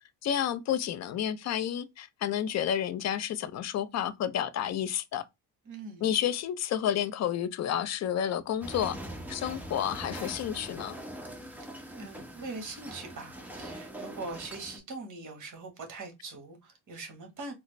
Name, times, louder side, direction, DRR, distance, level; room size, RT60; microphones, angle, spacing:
voice 1, 0.2-5.3 6.0-9.0 9.3-11.0, left 10 dB, 40° left, 0.4 m, -30 dB
voice 2, 5.6-6.1 11.9-17.5, right 3 dB, 45° right, 1.3 m, -42 dB
sound 1, 8.6-14.8, right 1 dB, 5° right, 0.7 m, -42 dB
4.0 x 2.0 x 3.1 m
cardioid pair, 130°, 45 cm